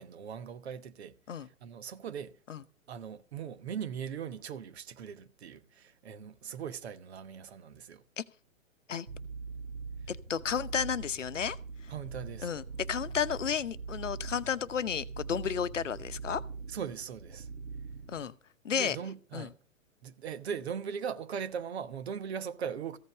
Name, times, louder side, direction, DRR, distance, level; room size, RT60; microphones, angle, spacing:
voice 1, 0.0-2.4 2.9-8.0 11.9-12.5 16.7-17.5 18.7-19.5 20.0-23.0, right 7 dB, 50° right, 1.1 m, -40 dB
sound 1, 9.1-18.2, right 4 dB, 85° right, 1.4 m, -42 dB
voice 2, 10.1-11.6 11.8-11.9 12.4-16.4 18.1-18.4 18.6-19.0 19.3-19.5, left 7 dB, 65° left, 0.9 m, -32 dB
15.0 x 5.3 x 9.7 m
figure-of-eight pair, 115°, 40 cm